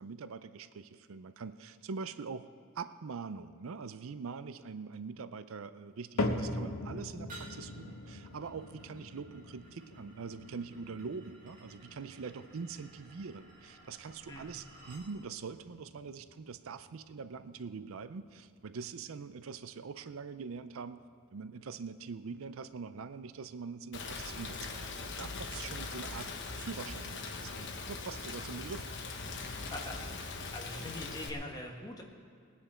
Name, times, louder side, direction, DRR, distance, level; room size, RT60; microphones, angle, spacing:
voice 1, 0.0-2.5 2.7-21.0 21.3-28.9, right 5 dB, 65° right, 12 dB, 0.5 m, -43 dB
sound 1, 6.2-22.5 22.8-23.3 23.9-24.0 24.8-24.9, left 2 dB, 90° left, 1.2 m, -43 dB
sound 2, 7.3-15.1, right 2 dB, 40° right, 2.5 m, -56 dB
Rain, 23.9-31.3, left 3 dB, 55° left, 1.1 m, -41 dB
voice 2, 29.5-30.1 30.5-32.0, left 1 dB, 15° left, 0 dB, 1.4 m, -43 dB
20.0 x 9.7 x 4.4 m, 2.2 s
head